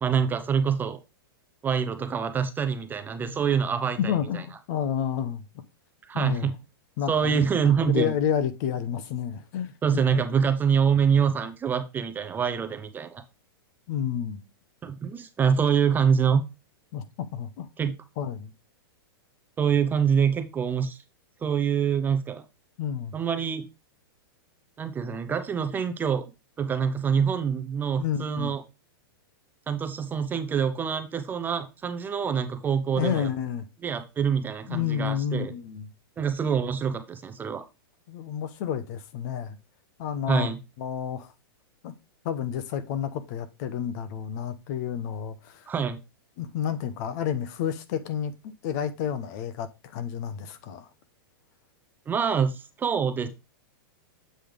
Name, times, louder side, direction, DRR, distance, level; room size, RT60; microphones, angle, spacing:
voice 1, 0.0-1.0 1.6-4.0 6.1-6.5 7.1-8.1 9.8-13.2 14.8-16.4 17.8-17.9 19.6-21.0 21.4-22.4 23.1-23.6 24.8-26.2 26.6-28.6 29.7-33.3 33.8-35.5 36.2-37.6 40.3-40.6 45.7-46.0 52.1-53.3, right 7 dB, 15° right, 0.6 m, -25 dB
voice 2, 4.0-5.6 6.1-6.5 7.0-10.2 13.9-14.4 16.9-17.0 17.3-18.5 22.8-23.2 28.0-28.5 33.0-33.7 34.7-35.9 38.1-39.6 40.0-40.5 40.8-41.3 41.8-41.9 42.2-45.7 46.4-50.9, left 9 dB, 45° left, 0.8 m, -30 dB
7.7 x 3.3 x 5.1 m
hypercardioid pair, 145°, 13 cm